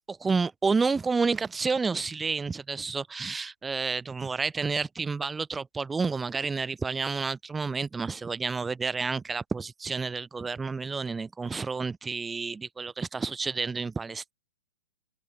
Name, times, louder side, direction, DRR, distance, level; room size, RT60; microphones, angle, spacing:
voice 1, 0.1-14.3, right 4 dB, 10° right, 1.6 m, -30 dB
hypercardioid pair, 155°, 0 cm